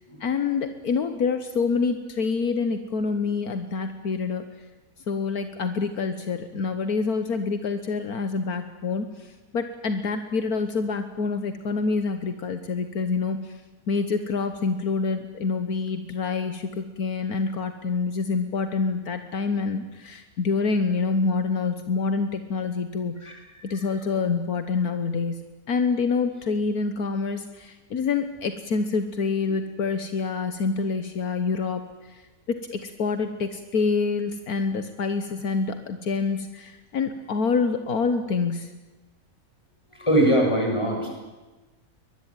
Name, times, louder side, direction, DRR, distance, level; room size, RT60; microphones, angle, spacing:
voice 1, 0.2-4.5 5.1-13.6 13.9-23.1 23.6-32.2 32.5-38.7, left 4 dB, 75° left, 8 dB, 1.7 m, -27 dB
voice 2, 39.9-41.1, right 1 dB, 20° left, 0 dB, 7.2 m, -22 dB
23.5 x 20.5 x 9.2 m, 1.2 s
omnidirectional pair, 1.6 m